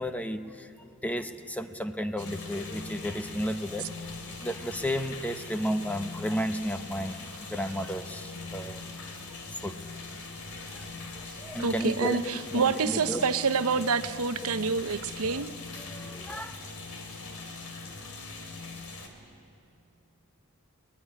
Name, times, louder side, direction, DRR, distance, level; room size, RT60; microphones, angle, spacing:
voice 1, 0.0-4.1 4.4-8.8 9.5-9.8 10.6-10.9 11.1-13.2 15.2-15.5 15.7-16.6, equal, 5° left, 8 dB, 0.7 m, -33 dB
sound 1, 2.2-19.1, left 3 dB, 90° left, 3.1 m, -41 dB
voice 2, 11.6-15.5, right 5 dB, 75° right, 12 dB, 0.7 m, -27 dB
23.0 x 18.5 x 9.8 m, 2.6 s
head